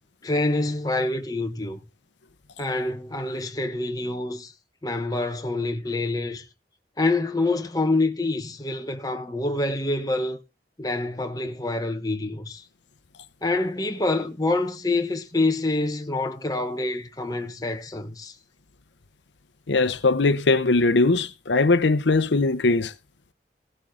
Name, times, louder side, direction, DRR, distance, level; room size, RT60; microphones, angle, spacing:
voice 1, 0.2-1.8 2.6-4.5 4.8-6.4 7.0-10.4 10.8-12.6 13.4-18.4, left 2 dB, 20° left, 1.2 m, -26 dB
voice 2, 19.7-22.9, left 3 dB, 80° left, 0.8 m, -20 dB
16.5 x 7.5 x 3.8 m
head